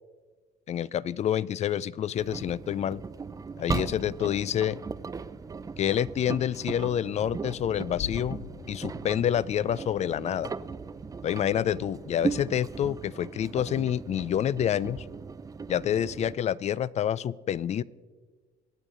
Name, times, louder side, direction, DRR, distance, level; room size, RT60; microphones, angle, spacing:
voice 1, 0.7-3.0 3.6-4.8 5.8-8.4 8.7-10.5 11.2-15.0 15.7-17.8, left 10 dB, 40° left, 21 dB, 0.4 m, -28 dB
Engine, 2.2-16.3, right 5 dB, 20° right, 0.5 m, -37 dB
Thunder / Rain, 3.6-11.8, left 10 dB, 60° left, 0.8 m, -47 dB
24.5 x 8.2 x 3.8 m, 1.4 s
cardioid pair, 110°, 17 cm